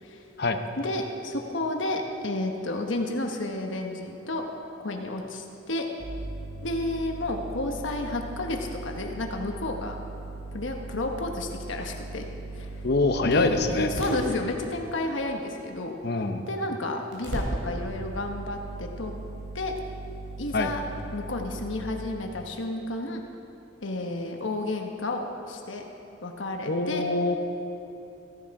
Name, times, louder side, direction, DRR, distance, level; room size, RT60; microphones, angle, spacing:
voice 1, 0.8-4.4 4.8-5.9 6.6-10.0 10.5-12.2 12.5-12.8 13.2-15.9 16.5-19.1 19.5-19.7 20.4-20.8 21.1-23.2 23.8-25.8 26.2-27.0, left 2 dB, 80° left, 2 dB, 1.2 m, -31 dB
sound 1, 6.0-14.2 17.1-21.8, right 2 dB, 85° right, 3.5 m, -37 dB
voice 2, 12.8-13.9 16.0-16.4 20.5-20.7 26.7-27.4, left 2 dB, 55° left, 7 dB, 0.8 m, -24 dB
15.0 x 11.0 x 4.8 m, 2.9 s
head